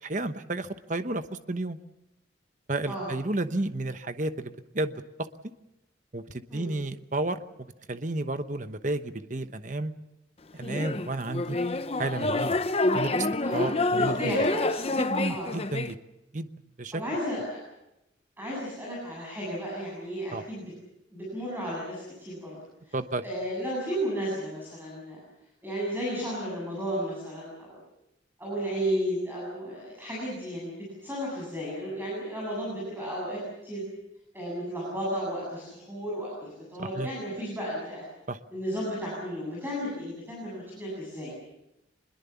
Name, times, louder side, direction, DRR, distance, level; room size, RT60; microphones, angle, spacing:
voice 1, 0.0-1.8 2.7-5.0 6.1-7.4 7.9-9.9 10.5-11.6 12.0-12.5 12.9-13.3 13.5-14.2 15.0-16.0 16.3-16.5 16.8-17.0 20.3-20.4 22.9-23.2 36.8-37.1 38.3-38.4, right 2 dB, 40° right, 10 dB, 1.0 m, -31 dB
sound 1, 10.6-15.9, left 2 dB, 30° left, 0.8 m, -27 dB
voice 2, 13.4-15.0 15.3-15.6 16.9-17.6 18.4-20.7 21.1-22.6 22.9-23.0 23.2-25.2 25.6-27.7 28.4-33.8 34.3-38.1 38.5-41.3, equal, 10° right, -5 dB, 7.8 m, -33 dB
25.0 x 21.5 x 7.2 m, 0.90 s
head